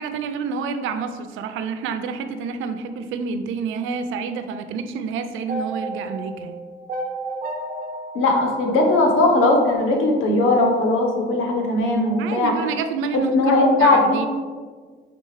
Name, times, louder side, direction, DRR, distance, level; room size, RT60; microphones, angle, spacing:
voice 1, 0.0-6.6 12.2-13.5 13.8-14.3, right 5 dB, 85° right, 9 dB, 0.4 m, -28 dB
sound 1, 5.5-9.7, right 2 dB, 45° right, 0.8 m, -32 dB
voice 2, 8.1-12.6 13.3-14.2, left 2 dB, 85° left, 1 dB, 0.9 m, -18 dB
4.3 x 3.8 x 3.2 m, 1.5 s
cardioid pair, 90°, 20 cm